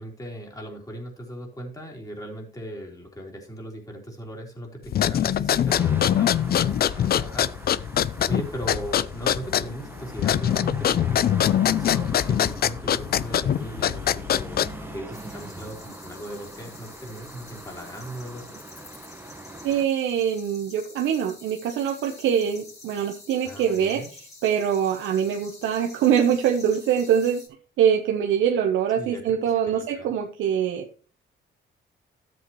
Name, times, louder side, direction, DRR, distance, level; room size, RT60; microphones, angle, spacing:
voice 1, 0.0-8.0 8.3-18.6 23.4-24.1 29.0-29.4 29.7-30.1, right 1 dB, 15° left, 0 dB, 3.8 m, -38 dB
sound 1, 4.9-15.0, left 10 dB, 50° left, 0.5 m, -23 dB
sound 2, 5.7-19.8, right 2 dB, 10° right, 1.3 m, -42 dB
sound 3, 15.1-27.5, left 3 dB, 35° left, 5.0 m, -48 dB
voice 2, 19.6-24.0 24.4-27.4 27.8-30.9, right 8 dB, 80° right, 3 dB, 1.0 m, -23 dB
13.0 x 8.0 x 3.1 m, 0.40 s
cardioid pair, 90°, 20 cm